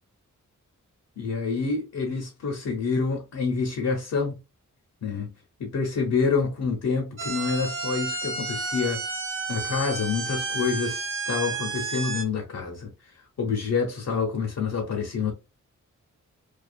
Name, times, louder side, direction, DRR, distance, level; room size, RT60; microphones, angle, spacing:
voice 1, 1.2-4.4 5.0-5.3 5.6-9.0 9.5-12.9 13.4-15.3, left 5 dB, 70° left, 0.7 m, -27 dB
sound 1, 7.2-12.2, right 4 dB, 40° right, 0.7 m, -31 dB
2.4 x 2.3 x 2.4 m
cardioid pair, 65°, 31 cm